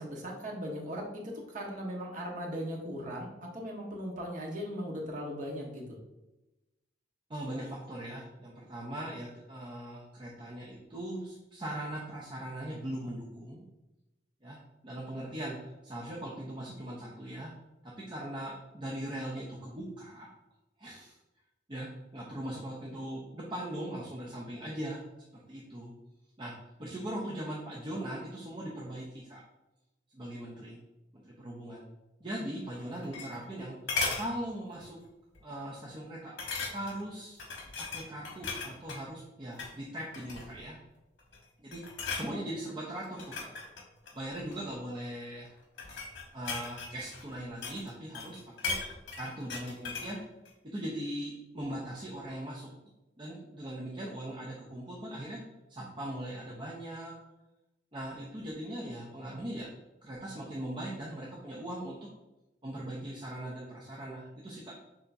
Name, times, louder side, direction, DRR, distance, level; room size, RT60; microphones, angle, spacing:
voice 1, 0.0-3.3 3.5-6.0, equal, 45° right, -1 dB, 1.0 m, -38 dB
voice 2, 7.3-13.6 14.4-14.6 14.8-17.5 17.8-20.3 20.8-21.1 21.7-25.0 25.3-25.9 26.4-26.5 26.8-29.4 30.1-30.8 31.1-31.9 32.2-33.8 34.1-35.0 35.4-36.4 36.7-37.4 37.8-40.8 41.6-41.8 42.1-43.5 44.1-45.5 46.3-48.8 49.1-50.2 50.6-52.7 53.2-55.4 55.7-57.1 57.9-59.7 60.0-62.0 62.6-64.7, right 1 dB, 25° right, -4 dB, 0.6 m, -40 dB
sound 1, 32.7-33.6 33.9-34.3 34.8-35.0 35.3-35.4 36.4-37.0 37.4-39.0 39.5-39.8 40.1-40.7 41.2-41.4 41.7-42.3 43.0-44.6 45.4-47.9 48.1-50.2 50.5-50.6, left 4 dB, 90° left, 1.2 m, -37 dB
6.8 x 2.9 x 2.6 m, 1.0 s
head